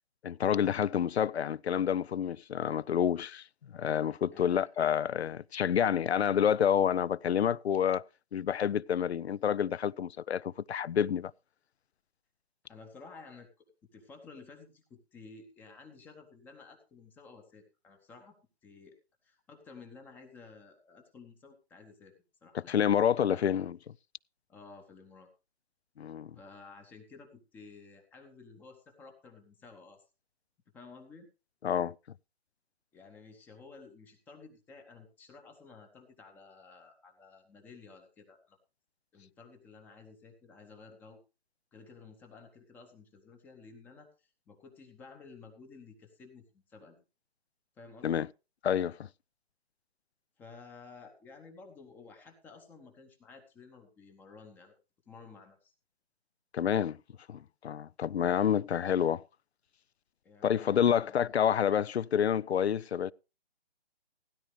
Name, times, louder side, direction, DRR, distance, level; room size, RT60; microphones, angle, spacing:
voice 1, 0.2-3.4 3.7-8.0 8.3-11.3 22.5-23.8 26.0-26.4 31.6-31.9 48.0-48.3 48.6-49.0 56.5-57.0 57.3-59.2 60.4-63.1, left 8 dB, 80° left, 0.5 m, -28 dB
voice 2, 4.3-4.7 12.7-13.5 13.9-18.3 18.6-18.9 19.2-22.1 22.4-22.9 23.2-23.5 24.5-25.3 26.3-30.0 30.7-31.3 32.9-38.6 39.1-41.2 41.7-47.0 47.8-48.3 50.4-54.7 55.1-55.7 60.2-61.3, left 4 dB, 5° left, 0.7 m, -53 dB
16.0 x 10.5 x 3.2 m
figure-of-eight pair, 145°, 32 cm